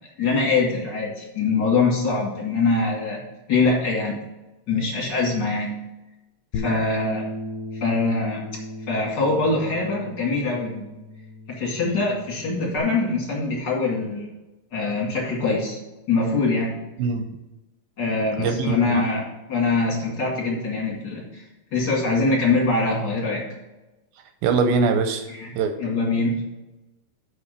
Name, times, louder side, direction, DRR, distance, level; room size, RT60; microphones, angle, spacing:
voice 1, 0.2-3.2 3.5-4.2 4.7-5.7 6.5-7.3 7.8-8.4 8.9-10.8 11.5-14.3 14.7-15.8 16.1-16.8 18.0-21.4 21.7-23.4 25.3-25.5 25.8-26.4, left 3 dB, 35° left, -2 dB, 2.0 m, -23 dB
Bass guitar, 6.5-12.8, left 1 dB, 75° left, 2.1 m, -35 dB
voice 2, 18.4-19.0 24.4-25.3 25.6-25.7, right 4 dB, 80° right, 7 dB, 2.3 m, -22 dB
6.8 x 5.4 x 6.6 m, 1.0 s
omnidirectional pair, 4.6 m